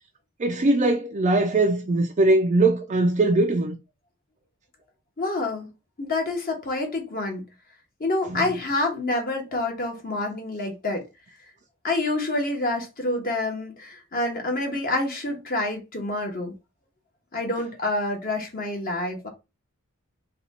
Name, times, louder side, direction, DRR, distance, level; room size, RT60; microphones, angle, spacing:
voice 1, 0.4-3.8 8.3-8.5, right 2 dB, 35° right, 0.4 m, -21 dB
voice 2, 5.2-5.7 6.0-7.4 8.0-11.0 11.8-16.5 17.3-19.3, left 2 dB, 45° left, 1.2 m, -27 dB
4.1 x 2.4 x 4.1 m
head